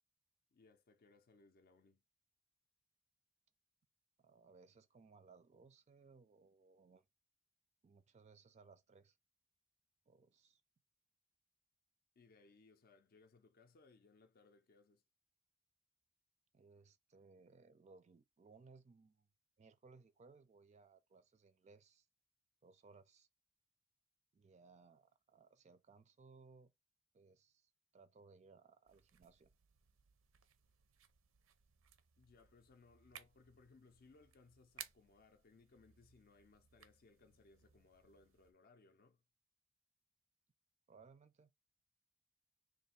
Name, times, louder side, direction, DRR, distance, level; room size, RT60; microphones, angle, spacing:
voice 1, 0.5-2.0 12.2-15.0 32.2-39.2, left 3 dB, 50° left, 0.5 m, -67 dB
voice 2, 4.2-7.1 7.8-9.2 10.1-10.6 16.5-19.3 19.6-22.1 22.6-23.3 24.3-26.7 27.1-29.5 40.9-41.5, right 4 dB, 35° right, 0.4 m, -64 dB
sound 1, 28.9-38.5, right 9 dB, 90° right, 0.5 m, -61 dB
3.2 x 2.5 x 4.1 m
head